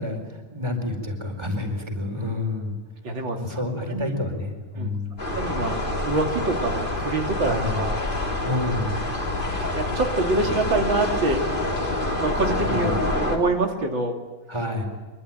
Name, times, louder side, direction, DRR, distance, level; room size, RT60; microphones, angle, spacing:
voice 1, 0.0-2.7 3.4-5.1 7.5-7.8 8.4-9.0 12.7-12.9 14.5-14.9, left 2 dB, 15° right, 5 dB, 4.6 m, -29 dB
voice 2, 3.0-3.6 3.9-4.1 4.8-5.0 5.3-8.0 9.7-11.4 12.2-13.0 13.3-14.2, right 2 dB, 75° right, 2 dB, 3.4 m, -25 dB
sound 1, 5.2-13.4, left 1 dB, 25° left, 3.9 m, -27 dB
25.0 x 24.0 x 9.0 m, 1.2 s
omnidirectional pair, 2.1 m